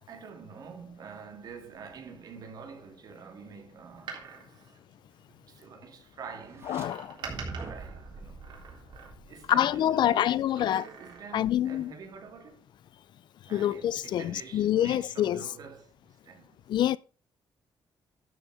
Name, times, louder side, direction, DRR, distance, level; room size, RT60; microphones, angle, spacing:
voice 1, 0.0-4.5 5.5-8.6 9.3-12.6 13.5-16.6, right 5 dB, 55° right, 2.4 m, -46 dB
Door, 3.9-5.7 6.6-9.5 10.4-11.6 11.9-12.0, right 6 dB, 75° right, 3.5 m, -46 dB
sound 1, 6.4-6.9 7.2-9.8, right 3 dB, 30° right, 1.8 m, -43 dB
voice 2, 6.7-7.1 9.5-10.8 11.3-11.9 13.5-15.5 16.7-17.0, left 11 dB, 70° left, 0.5 m, -26 dB
12.5 x 6.3 x 5.0 m
wide cardioid pair, 170°, 8 cm